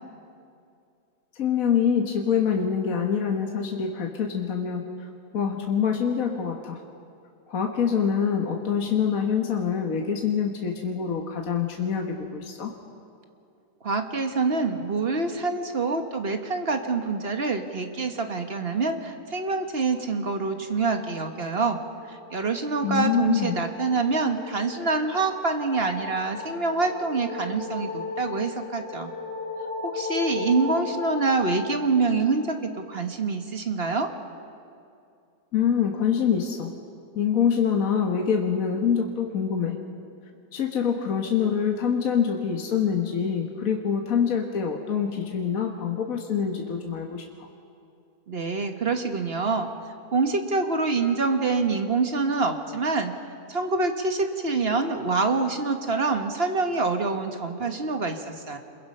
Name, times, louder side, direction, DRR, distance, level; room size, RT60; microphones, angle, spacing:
voice 1, 1.3-4.8 5.3-6.8 7.5-12.7 22.8-23.6 35.5-36.7 37.2-39.8 40.5-47.5, left 7 dB, 60° left, 2 dB, 1.7 m, -25 dB
voice 2, 13.8-21.8 22.1-29.1 29.8-34.1 48.3-49.7 50.1-53.1 53.5-58.6, right 4 dB, 40° right, 5 dB, 1.4 m, -26 dB
sound 1, 21.5-32.9, left 3 dB, 65° right, 8.1 m, -36 dB
26.5 x 22.0 x 5.5 m, 2.5 s
omnidirectional pair, 1.6 m